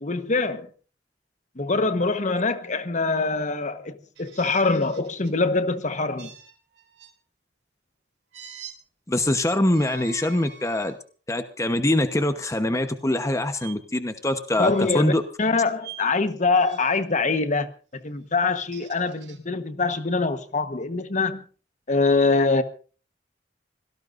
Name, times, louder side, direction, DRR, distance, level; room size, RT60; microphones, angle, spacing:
voice 1, 0.0-0.7 1.6-6.3 14.6-15.1 15.4-21.4 21.9-22.6, left 3 dB, 45° left, 1.2 m, -24 dB
sound 1, 4.1-5.4 6.2-7.1 8.3-8.8 9.6-11.0 11.6-11.8 13.6-13.7 14.6-15.2 15.8-16.1 16.5-17.0 18.4-19.4, right 8 dB, 70° right, 3.5 m, -45 dB
voice 2, 9.1-10.9 11.3-15.2, left 1 dB, 15° left, 1.0 m, -23 dB
25.5 x 17.5 x 2.6 m
head